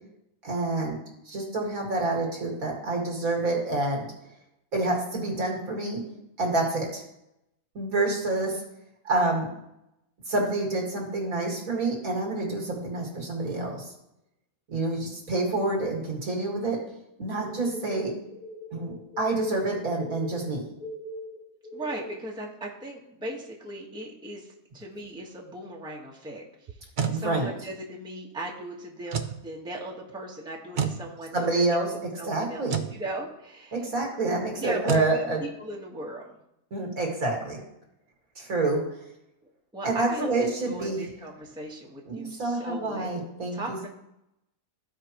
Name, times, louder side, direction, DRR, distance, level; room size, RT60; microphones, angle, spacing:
voice 1, 0.4-4.1 4.7-6.0 6.4-7.0 7.7-8.6 9.0-9.5 10.3-13.9 14.7-16.8 17.2-18.1 18.7-20.6 27.1-27.5 31.3-31.9 32.3-32.8 33.7-35.4 36.7-37.6 38.4-38.8 39.8-41.0 42.1-43.9, right 2 dB, 70° right, 0 dB, 2.4 m, -28 dB
sound 1, 17.5-22.3, equal, 75° left, 1.9 m, -40 dB
voice 2, 21.7-26.7 27.1-31.5 31.9-33.9 34.5-36.4 39.7-43.1 43.5-43.9, right 1 dB, 5° right, -1 dB, 1.2 m, -38 dB
sound 2, 26.7-27.2 29.1-29.4 30.8-31.0 32.7-32.9 34.9-35.1, right 7 dB, 50° right, 0.5 m, -28 dB
14.5 x 5.0 x 3.0 m, 0.83 s
omnidirectional pair, 1.5 m